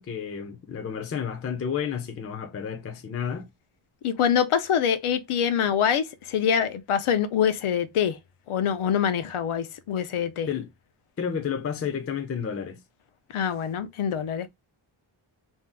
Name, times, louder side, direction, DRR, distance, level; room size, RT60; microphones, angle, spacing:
voice 1, 0.0-3.5 10.5-10.7 11.2-12.8, left 7 dB, 30° left, 0.4 m, -31 dB
voice 2, 4.0-8.2 8.5-10.5 13.3-14.5, left 8 dB, 85° left, 0.6 m, -25 dB
2.7 x 2.3 x 3.4 m
wide cardioid pair, 150°, 49 cm